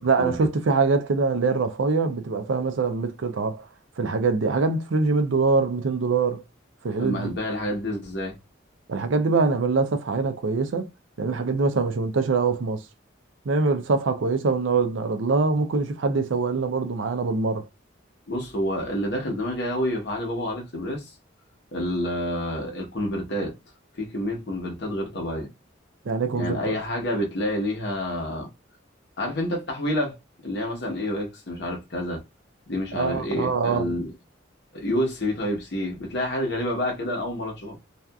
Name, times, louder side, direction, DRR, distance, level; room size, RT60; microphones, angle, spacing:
voice 1, 0.0-3.7 4.0-6.4 6.8-7.3 8.9-10.9 11.2-12.8 13.5-17.7 26.0-26.8 32.9-34.0, right 4 dB, 75° right, 0.5 m, -24 dB
voice 2, 7.0-8.3 18.3-21.1 21.7-23.5 23.9-25.5 26.3-28.5 29.2-30.2 30.4-32.2 32.7-34.1 34.7-37.8, left 1 dB, 55° left, 0.9 m, -28 dB
2.7 x 2.4 x 2.2 m
head